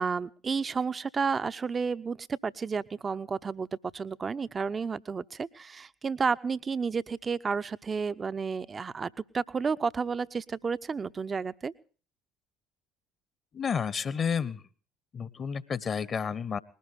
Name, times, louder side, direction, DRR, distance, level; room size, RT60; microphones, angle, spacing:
voice 1, 0.0-3.7 3.9-11.7, right 5 dB, 30° right, 14 dB, 0.9 m, -31 dB
voice 2, 13.5-14.6 15.1-16.6, left 6 dB, 35° left, 18 dB, 1.3 m, -31 dB
20.5 x 18.0 x 3.5 m, 0.41 s
figure-of-eight pair, 55°, 0 cm